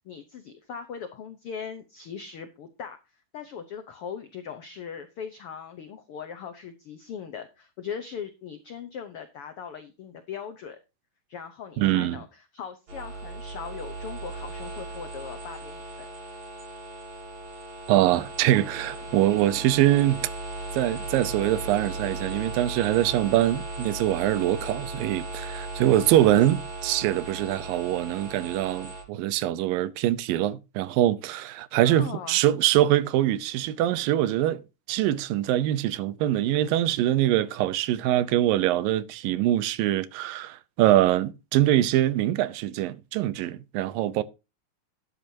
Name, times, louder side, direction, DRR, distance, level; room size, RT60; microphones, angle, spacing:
voice 1, 0.0-3.0 3.3-10.8 11.3-16.1 31.8-32.4, left 7 dB, 80° left, 1.2 m, -39 dB
voice 2, 11.8-12.2 17.9-20.3 20.7-34.6 34.9-44.2, right 13 dB, 90° right, 2.5 m, -23 dB
sound 1, 12.9-29.0, right 2 dB, 55° right, 5.4 m, -37 dB
12.5 x 9.9 x 2.8 m
omnidirectional pair, 3.9 m